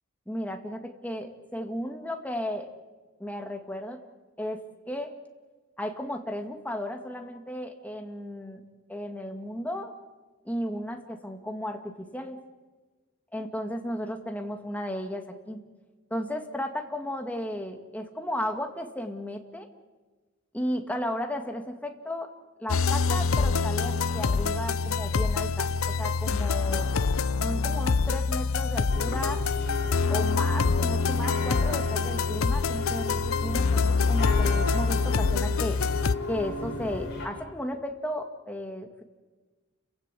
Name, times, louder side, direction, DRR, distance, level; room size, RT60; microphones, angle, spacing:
voice 1, 0.3-2.7 3.2-4.0 4.4-5.1 5.8-8.6 8.9-9.9 10.4-12.4 13.3-15.6 16.1-19.7 20.5-22.3 22.6-26.9 27.4-29.4 30.1-35.8 36.3-39.0, equal, 10° left, 4 dB, 2.0 m, -34 dB
sound 1, 22.7-36.2, left 4 dB, 80° left, 0.7 m, -25 dB
sound 2, 28.9-37.3, left 3 dB, 55° left, 6.4 m, -34 dB
29.5 x 16.0 x 8.4 m, 1.3 s
head